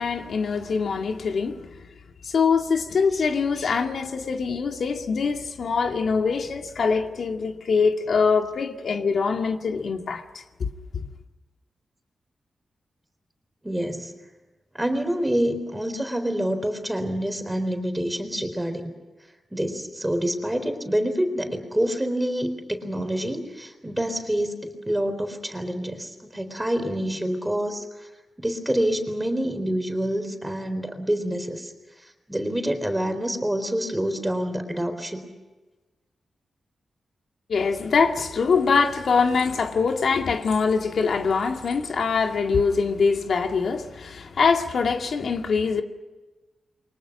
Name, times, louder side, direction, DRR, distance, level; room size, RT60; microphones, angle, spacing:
voice 1, 0.0-1.9 2.2-11.0 37.5-45.8, left 5 dB, 70° left, 2.1 m, -23 dB
voice 2, 13.6-14.1 14.7-18.9 19.5-27.9 28.4-31.7 32.3-35.2, equal, 10° right, 4.0 m, -27 dB
29.0 x 24.0 x 6.1 m
wide cardioid pair, 125°, 0 cm